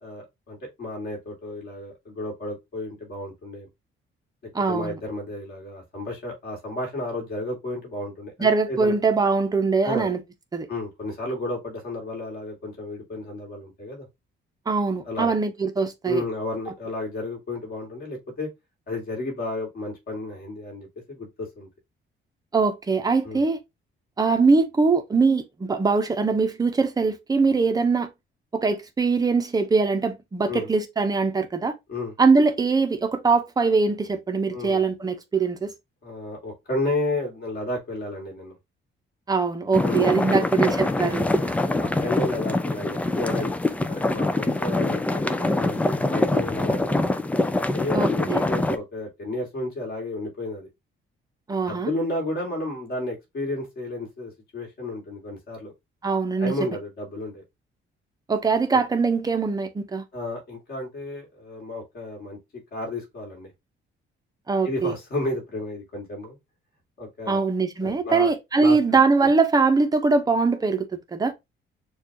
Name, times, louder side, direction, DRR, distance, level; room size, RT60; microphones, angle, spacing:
voice 1, 0.0-3.7 4.7-8.9 9.8-10.1 10.7-14.1 15.1-15.3 16.0-18.5 18.9-21.7 23.2-23.5 30.5-30.7 31.9-32.1 34.5-34.8 36.0-38.6 39.8-40.5 41.0-41.2 41.4-43.5 43.9-47.1 47.7-50.7 51.7-55.7 56.4-57.4 58.7-58.8 60.1-62.4 62.7-63.5 64.6-66.4 67.0-67.4 67.8-68.3 68.6-68.8 69.2-69.3, left 2 dB, 45° left, 2.5 m, -32 dB
voice 2, 4.5-5.0 8.4-10.2 10.5-10.7 14.7-16.2 22.5-23.6 24.2-28.1 28.5-31.7 32.2-35.7 39.3-41.3 47.9-48.4 51.5-51.9 56.0-56.5 58.3-60.0 64.5-65.0 67.3-71.3, right 4 dB, 20° right, 0.7 m, -22 dB
sound 1, 39.7-48.8, left 2 dB, 5° left, 0.3 m, -24 dB
6.7 x 2.4 x 2.8 m
cardioid pair, 180°, 21 cm